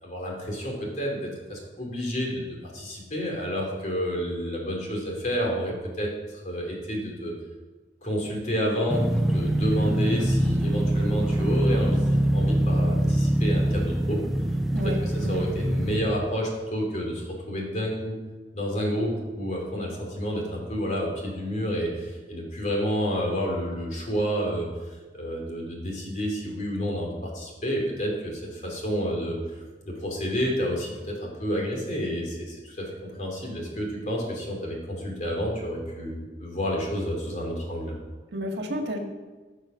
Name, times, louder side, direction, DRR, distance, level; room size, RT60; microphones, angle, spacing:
voice 1, 0.0-7.3 8.0-14.2 14.8-18.2 18.5-37.9, equal, 40° left, -1 dB, 3.3 m, -30 dB
sound 1, 8.9-16.0, right 1 dB, ahead, 0.7 m, -24 dB
voice 2, 14.7-15.4 33.7-33.8 38.3-39.0, equal, 75° right, 3 dB, 1.8 m, -31 dB
15.0 x 6.4 x 6.3 m, 1.3 s
head